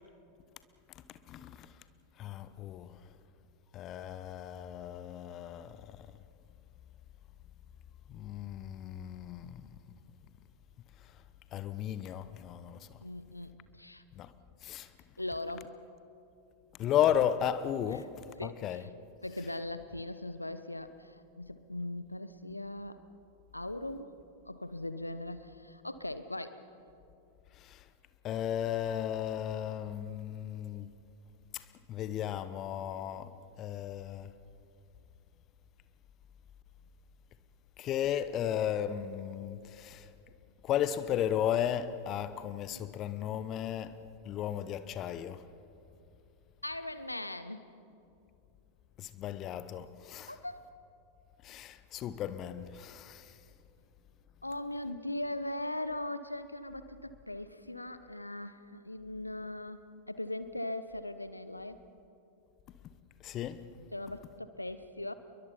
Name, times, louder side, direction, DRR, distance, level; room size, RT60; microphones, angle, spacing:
voice 1, 1.3-1.7 2.2-3.0 3.7-6.1 8.1-9.8 11.5-12.9 14.1-14.3 14.6-14.9 16.8-18.9 27.6-27.8 28.2-30.9 31.5-31.6 31.9-34.3 37.8-40.1 40.6-44.0 44.3-45.5 49.0-50.3 51.4-53.3 63.2-63.7, left 10 dB, 35° left, 1.0 m, -34 dB
voice 2, 13.0-14.0 15.2-15.7 18.4-18.9 19.2-23.0 23.5-24.1 24.4-26.6 42.7-42.8 46.6-47.6 50.3-50.7 54.4-61.8 63.9-65.1, left 1 dB, 85° left, 0.9 m, -39 dB
29.0 x 22.5 x 5.7 m
figure-of-eight pair, 90°, 0 cm